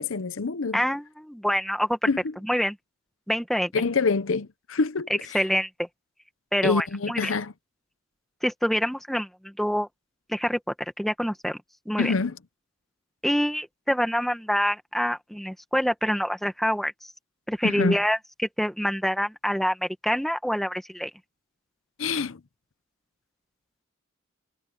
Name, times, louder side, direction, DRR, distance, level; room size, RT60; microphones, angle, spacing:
voice 1, 0.0-0.8 2.1-2.2 3.7-5.4 6.6-7.5 12.0-12.4 17.6-18.0 22.0-22.4, left 4 dB, 75° left, 0.7 m, -26 dB
voice 2, 0.7-2.0 2.4-2.8 3.3-3.7 5.3-5.7 6.5-7.3 8.4-9.9 10.3-10.6 11.0-11.6 11.9-12.1 13.2-16.9 17.5-18.2 18.6-21.1, equal, ahead, 1.9 m, -26 dB
head